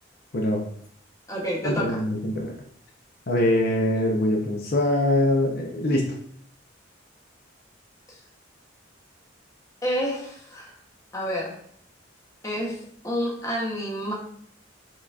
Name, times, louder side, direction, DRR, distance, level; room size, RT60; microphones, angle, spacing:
voice 1, 0.3-0.6 1.6-2.5 3.3-6.2, left 1 dB, 50° left, 1 dB, 0.5 m, -23 dB
voice 2, 1.3-2.0 9.8-10.7 11.1-11.6 12.4-14.1, equal, 15° left, -2 dB, 0.8 m, -29 dB
4.7 x 3.7 x 2.3 m, 0.65 s
head